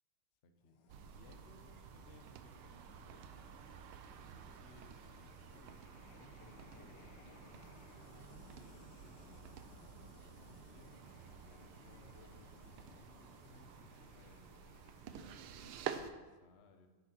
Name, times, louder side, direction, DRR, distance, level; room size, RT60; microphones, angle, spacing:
voice 1, 0.4-0.8 1.1-3.6 3.9-5.8 6.4-10.9 11.4-14.5 15.1-16.9, left 3 dB, 45° left, 5 dB, 0.9 m, -63 dB
sound 1, 0.6-16.0, left 4 dB, 65° left, 1.4 m, -62 dB
sound 2, 0.9-16.1, right 8 dB, 90° right, 1.6 m, -51 dB
10.5 x 8.7 x 4.5 m, 1.3 s
omnidirectional pair, 2.3 m